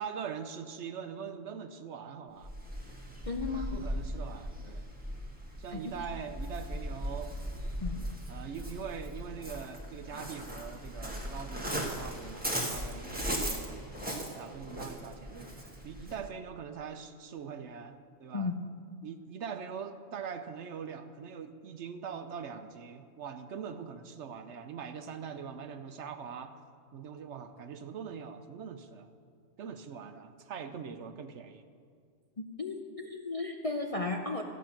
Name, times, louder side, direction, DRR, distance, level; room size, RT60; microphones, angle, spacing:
voice 1, 0.0-2.5 3.4-4.8 5.6-7.3 8.3-15.5 15.8-18.5 19.0-26.6 26.9-29.1 29.6-31.6, right 7 dB, 65° right, 9 dB, 0.9 m, -42 dB
Waves surf, 2.4-16.3, equal, 5° right, 1.2 m, -38 dB
voice 2, 3.3-3.9 5.7-5.9 7.8-8.1 18.3-18.6 32.4-34.4, left 3 dB, 40° left, 2 dB, 0.5 m, -35 dB
13.5 x 8.2 x 5.8 m, 2.1 s
omnidirectional pair, 1.4 m